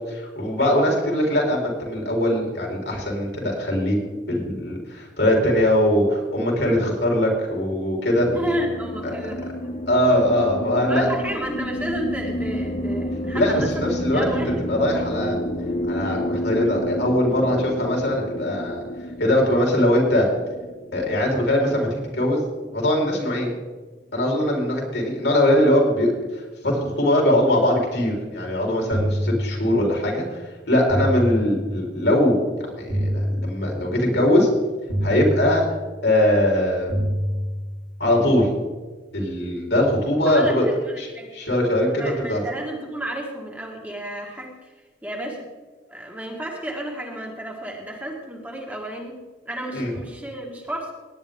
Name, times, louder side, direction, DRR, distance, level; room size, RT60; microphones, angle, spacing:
voice 1, 0.1-4.0 4.3-8.3 9.9-11.1 13.3-14.3 14.7-15.4 15.9-18.8 19.2-20.3 20.9-22.4 22.7-23.5 24.1-34.5 35.0-35.6 36.0-37.0 38.0-38.5 39.1-40.7 41.0-42.4 49.7-49.9, left 1 dB, 75° left, -1 dB, 3.9 m, -21 dB
sound 1, 8.2-22.7, left 1 dB, 35° left, 0.6 m, -30 dB
voice 2, 8.3-9.8 10.9-14.5 40.3-41.3 42.0-44.5 45.0-45.5 45.9-49.2 49.4-50.9, right 1 dB, 10° right, -1 dB, 1.7 m, -32 dB
sound 2, 28.9-30.1 30.9-32.1 32.9-34.1 34.9-36.1 36.9-38.1, equal, 50° right, 2.4 m, -27 dB
17.5 x 10.0 x 3.7 m, 1.3 s
head